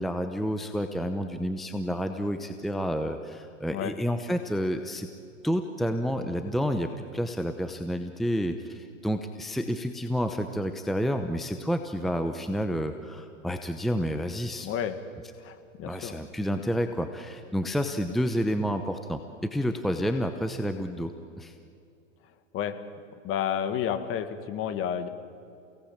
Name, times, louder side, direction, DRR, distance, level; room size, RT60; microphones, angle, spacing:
voice 1, 0.0-5.1 5.4-14.7 15.8-21.1 21.4-21.5, equal, ahead, 7 dB, 0.9 m, -29 dB
voice 2, 14.6-15.0 15.4-16.2 22.5-22.7 23.2-25.1, left 9 dB, 35° left, 10 dB, 2.0 m, -30 dB
29.5 x 18.5 x 8.8 m, 2.6 s
hypercardioid pair, 130°, 39 cm